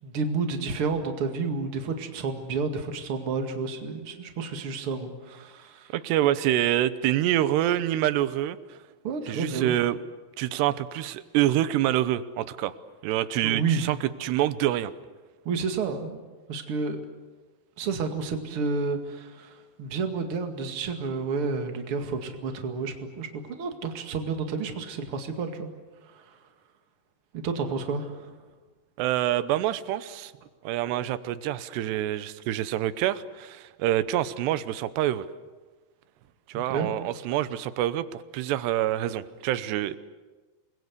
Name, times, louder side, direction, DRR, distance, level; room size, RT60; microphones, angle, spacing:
voice 1, 0.0-5.9 9.0-9.7 13.4-13.9 15.4-16.2 16.5-17.0 17.8-25.7 26.1-26.3 27.3-28.3 36.7-36.9, right 4 dB, 40° right, 5 dB, 2.4 m, -30 dB
voice 2, 5.9-8.8 9.3-10.0 10.4-12.7 13.0-14.9 29.0-30.3 30.6-35.3 36.5-40.0, right 13 dB, 85° right, 14 dB, 3.0 m, -26 dB
28.0 x 21.5 x 8.2 m, 1.3 s
omnidirectional pair, 4.8 m